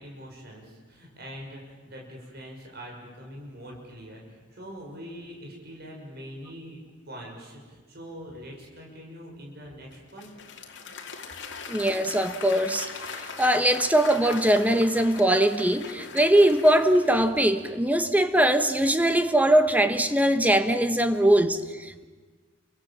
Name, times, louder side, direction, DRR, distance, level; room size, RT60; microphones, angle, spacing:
voice 1, 0.0-6.8 7.1-10.3, equal, 55° right, 6.5 m, -43 dB
Applause / Crowd, 9.9-17.7, left 5 dB, 60° left, 2.8 m, -40 dB
voice 2, 11.7-12.9 13.4-22.1, right 1 dB, 10° right, 1.1 m, -21 dB
29.5 x 24.5 x 7.5 m
head